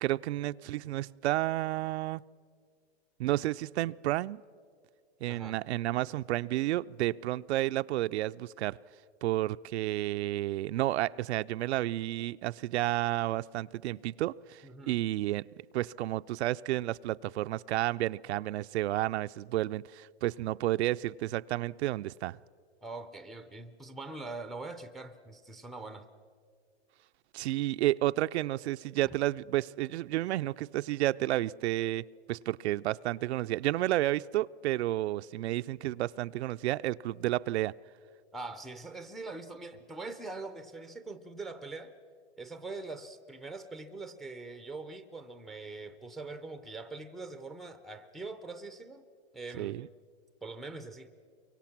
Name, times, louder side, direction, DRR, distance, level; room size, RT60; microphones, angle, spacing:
voice 1, 0.0-2.2 3.2-4.4 5.2-8.8 9.2-15.5 15.7-22.4 27.3-37.7 49.6-49.9, right 15 dB, 75° right, 0.5 m, -31 dB
voice 2, 14.6-14.9 22.8-26.1 38.3-41.9 42.4-49.0 49.3-49.8 50.4-51.1, right 3 dB, ahead, 0.5 m, -43 dB
24.0 x 24.0 x 5.9 m
hypercardioid pair, 145°, 34 cm